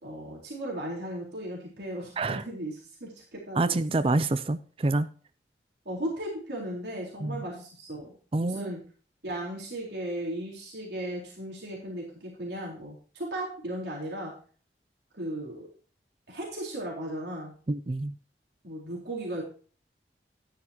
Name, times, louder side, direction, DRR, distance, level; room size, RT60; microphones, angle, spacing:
voice 1, 0.0-3.8 5.9-8.1 8.4-8.8 9.2-14.3 15.2-15.7 16.3-17.5 18.6-19.4, right 1 dB, 75° right, 3.9 m, -36 dB
voice 2, 3.5-5.1 7.2-7.5 8.3-8.7 17.7-18.1, right 2 dB, 30° right, 0.4 m, -27 dB
12.0 x 10.0 x 2.9 m
head